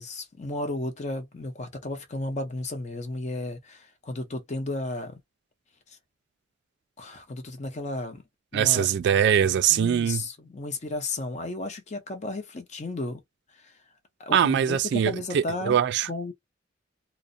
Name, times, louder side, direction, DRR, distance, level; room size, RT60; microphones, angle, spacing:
voice 1, 0.0-5.2 5.9-6.0 7.0-8.2 8.5-8.9 9.7-13.2 13.5-13.7 14.2-15.8 16.0-16.3, left 2 dB, 40° left, 0.6 m, -34 dB
voice 2, 8.5-10.2 14.3-16.1, right 8 dB, 65° right, 0.3 m, -22 dB
2.4 x 2.0 x 2.5 m
head